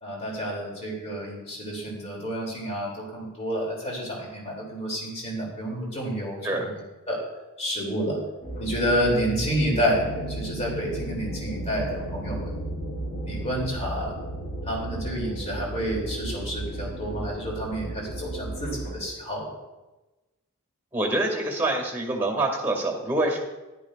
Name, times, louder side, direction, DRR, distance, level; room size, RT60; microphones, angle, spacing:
voice 1, 0.0-7.2 7.6-8.2 8.6-12.5 13.3-14.1 14.7-19.4, equal, 30° left, -3 dB, 2.8 m, -29 dB
sound 1, 8.4-19.0, right 1 dB, 50° left, 2.6 m, -34 dB
voice 2, 20.9-23.4, right 2 dB, 10° right, 1 dB, 2.0 m, -25 dB
14.0 x 11.0 x 2.4 m, 1.1 s
head